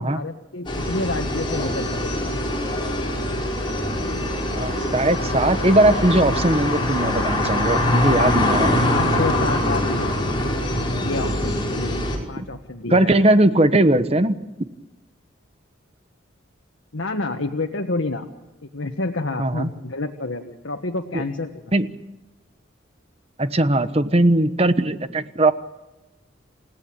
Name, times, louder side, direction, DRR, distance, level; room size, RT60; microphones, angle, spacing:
voice 1, 0.0-2.3 8.9-10.2 11.0-12.0 12.3-13.2 16.9-18.2 18.7-21.6, left 2 dB, 90° left, 4 dB, 1.5 m, -29 dB
sound 1, 0.7-12.2, left 1 dB, 25° left, 4.9 m, -23 dB
voice 2, 4.5-8.7 12.4-12.5 12.9-14.4 19.4-19.7 21.1-21.2 21.7-21.9 23.4-25.5, right 1 dB, 30° right, 11 dB, 1.2 m, -19 dB
28.5 x 17.0 x 9.0 m, 1.1 s
head